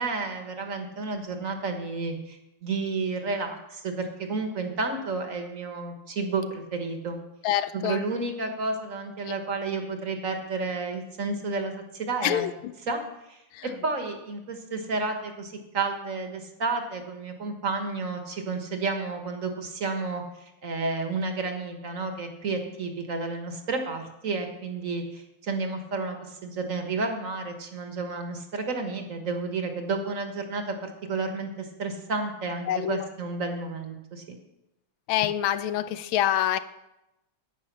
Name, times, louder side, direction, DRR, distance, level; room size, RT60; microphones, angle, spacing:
voice 1, 0.0-7.2 7.7-12.4 12.9-13.0 13.3-34.4, right 3 dB, 45° right, 1.6 m, -31 dB
voice 2, 7.4-8.0 12.2-12.7 13.5-13.7 32.7-33.1 35.1-36.6, left 11 dB, 85° left, 1.4 m, -26 dB
10.5 x 9.2 x 6.0 m
omnidirectional pair, 2.2 m